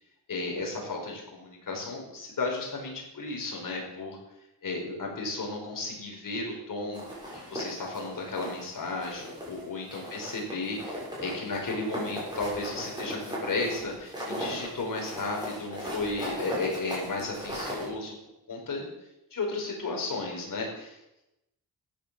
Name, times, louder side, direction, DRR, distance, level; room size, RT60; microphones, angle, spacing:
voice 1, 0.3-4.2 4.6-7.1 7.3-18.2 18.5-18.8 19.3-21.0, left 3 dB, 55° left, 0 dB, 5.5 m, -34 dB
sound 1, 6.9-8.7 9.0-9.6 9.9-17.9, equal, 10° right, 7.1 m, -37 dB
13.5 x 11.0 x 7.1 m, 0.88 s
wide cardioid pair, 140°, 38 cm